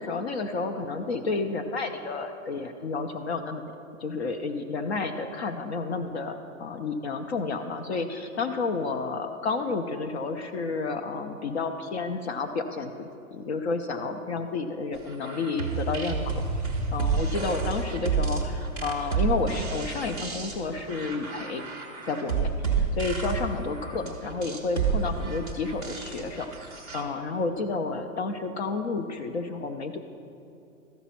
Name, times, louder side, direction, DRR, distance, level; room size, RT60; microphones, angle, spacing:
voice 1, 0.0-3.7 4.0-16.4 16.9-21.6 22.0-30.0, left 4 dB, 50° left, 6 dB, 0.6 m, -31 dB
sound 1, 15.1-27.0, right 5 dB, 10° left, 0.5 m, -30 dB
13.5 x 5.0 x 5.6 m, 2.7 s
hypercardioid pair, 155°, 41 cm